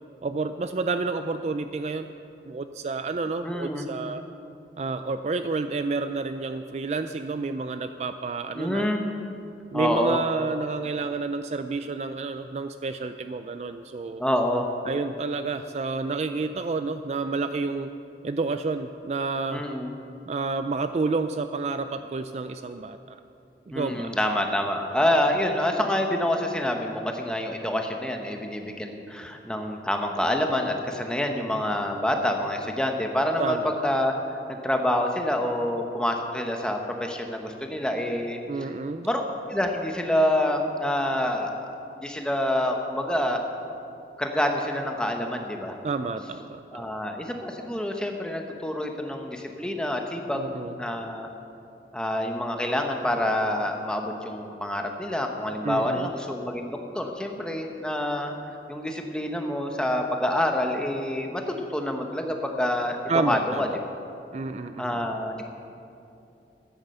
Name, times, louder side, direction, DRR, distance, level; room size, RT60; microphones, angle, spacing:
voice 1, 0.2-2.1 2.5-4.2 4.8-8.9 9.7-14.2 14.9-17.9 18.2-19.6 20.3-23.2 23.7-24.1 33.4-33.8 38.5-39.1 45.8-46.9 50.3-50.8 55.6-56.1 63.1-63.6 64.3-65.1, right 3 dB, 40° right, 9 dB, 0.3 m, -30 dB
voice 2, 3.4-3.9 8.6-9.0 9.7-10.2 14.2-14.7 19.5-19.9 23.7-38.4 39.0-39.2 39.5-41.7 42.0-43.4 44.2-45.8 46.7-51.3 51.9-58.3 58.7-64.0 64.8-65.5, left 1 dB, 5° left, 3 dB, 0.9 m, -27 dB
13.0 x 9.6 x 6.8 m, 2.8 s
head